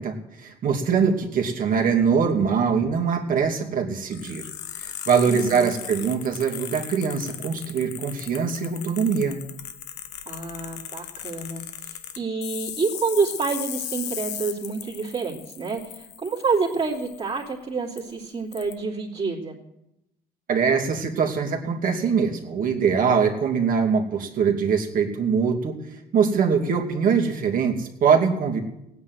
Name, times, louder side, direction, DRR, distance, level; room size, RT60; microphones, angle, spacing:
voice 1, 0.0-4.5 4.8-9.4 20.5-28.6, right 6 dB, 55° right, 3 dB, 2.6 m, -23 dB
sound 1, 4.1-17.5 18.0-18.1 18.5-18.7, left 10 dB, 80° left, 1.4 m, -37 dB
voice 2, 5.2-5.7 10.3-11.6 12.1-19.6, right 4 dB, 35° right, -4 dB, 2.9 m, -28 dB
17.0 x 9.5 x 7.9 m, 0.86 s
cardioid pair, 110°, 17 cm